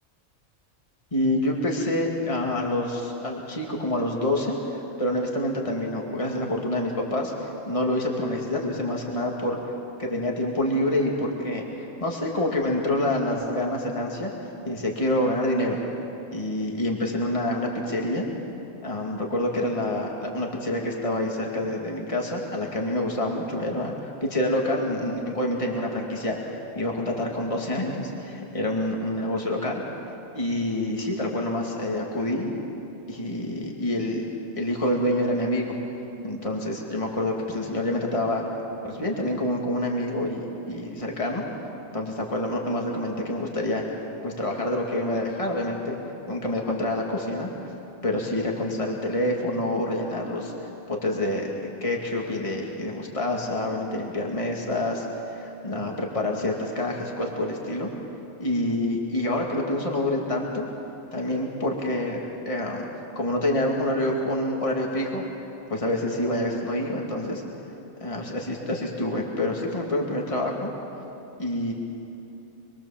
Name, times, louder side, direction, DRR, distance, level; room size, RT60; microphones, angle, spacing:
voice 1, 1.1-9.6 10.0-14.3 14.7-15.8 16.3-18.3 18.8-23.9 24.2-29.8 30.3-32.5 33.1-34.3 34.6-35.7 36.2-38.4 38.8-41.4 41.9-43.8 44.2-46.0 46.3-47.5 48.0-50.5 50.9-51.5 51.8-57.9 58.4-60.7 61.1-62.9 63.1-65.3 65.7-67.4 68.0-70.7 71.4-71.7, left 1 dB, 25° left, -1 dB, 2.5 m, -27 dB
26.0 x 22.5 x 7.3 m, 2.8 s
omnidirectional pair, 1.4 m